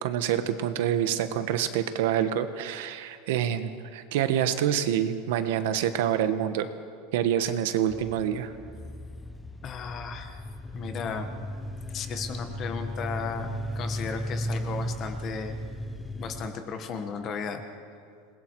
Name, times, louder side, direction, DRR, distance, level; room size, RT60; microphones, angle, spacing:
voice 1, 0.0-6.7 7.1-8.5, right 10 dB, 60° right, 10 dB, 1.3 m, -27 dB
sound 1, 7.9-16.5, equal, 5° left, 0.8 m, -36 dB
voice 2, 9.6-10.4 10.7-11.4 11.9-15.6 16.1-17.6, left 6 dB, 25° left, 7 dB, 1.4 m, -35 dB
27.5 x 21.0 x 4.7 m, 2.3 s
supercardioid pair, 175°, 0 cm